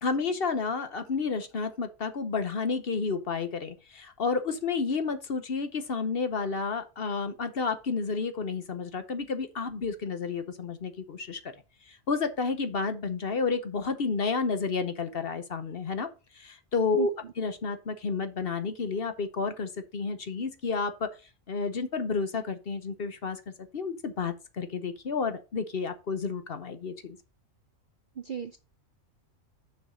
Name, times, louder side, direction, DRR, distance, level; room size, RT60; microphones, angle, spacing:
voice 1, 0.0-11.5 11.9-16.1 16.3-17.1 17.4-21.2 21.5-27.2, left 4 dB, 50° left, 1.0 m, -31 dB
voice 2, 17.0-17.3 28.2-28.6, right 8 dB, 55° right, 0.5 m, -36 dB
7.1 x 5.6 x 4.9 m
omnidirectional pair, 1.4 m